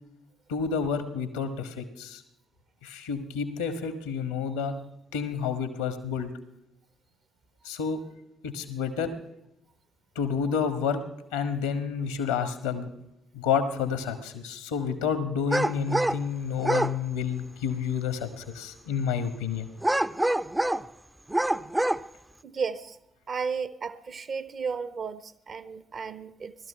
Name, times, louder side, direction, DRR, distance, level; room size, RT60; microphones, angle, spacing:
voice 1, 0.5-2.2 2.8-4.7 5.1-6.3 7.6-8.0 8.4-9.1 10.1-11.0 11.3-12.9 13.3-19.7, left 6 dB, 75° left, 1.4 m, -29 dB
sound 1, 15.5-16.2 16.6-16.9 19.8-20.9 21.3-22.0, right 1 dB, 15° right, 0.6 m, -25 dB
voice 2, 22.4-23.0 23.3-26.6, right 5 dB, 50° right, 0.9 m, -34 dB
18.0 x 12.5 x 5.6 m
figure-of-eight pair, 40°, 0 cm